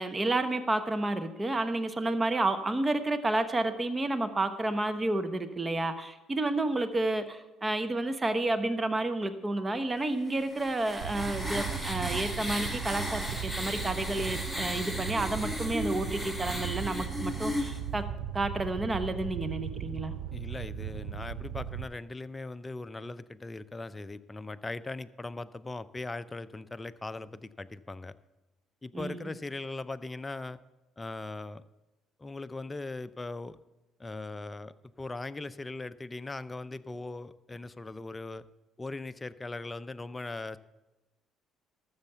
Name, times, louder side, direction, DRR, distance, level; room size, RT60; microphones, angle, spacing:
voice 1, 0.0-18.0 18.3-20.1 28.9-29.3, right 2 dB, 25° right, 10 dB, 1.0 m, -30 dB
sound 1, 10.3-17.8, left 1 dB, 5° right, 1.9 m, -36 dB
Fire, 11.0-21.8, right 10 dB, 80° right, 0.6 m, -37 dB
voice 2, 20.3-28.1 28.8-30.6 31.0-31.6 32.2-33.6 34.0-38.4 38.8-40.6, left 2 dB, 20° left, 13 dB, 0.5 m, -39 dB
13.0 x 7.2 x 6.8 m, 1.1 s
supercardioid pair, 65°, 0 cm